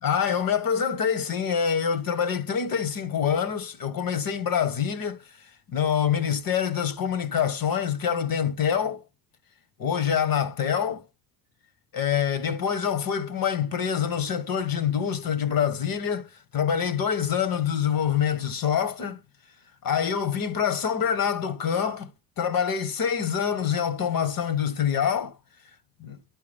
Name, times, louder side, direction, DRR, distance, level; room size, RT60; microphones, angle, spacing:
voice 1, 0.0-9.0 9.8-11.0 11.9-19.2 19.8-22.1 22.4-25.4 26.0-26.2, left 8 dB, 65° left, 1.2 m, -26 dB
10.5 x 4.7 x 3.4 m
cardioid pair, 100°, 37 cm